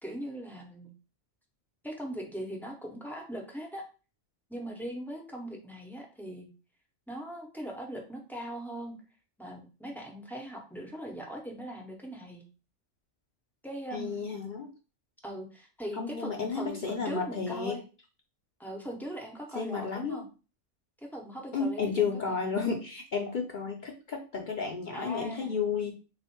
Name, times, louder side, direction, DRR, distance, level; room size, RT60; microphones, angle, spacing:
voice 1, 0.0-0.9 1.8-3.9 4.5-6.5 7.1-9.0 9.4-12.4 13.6-14.2 15.2-17.8 18.6-20.3 21.0-22.4 24.9-25.6, equal, 5° left, 0 dB, 0.3 m, -40 dB
voice 2, 13.9-14.7 16.0-17.8 19.5-20.3 21.5-25.9, left 5 dB, 55° left, 2 dB, 0.5 m, -32 dB
3.5 x 2.4 x 4.3 m, 0.34 s
omnidirectional pair, 1.4 m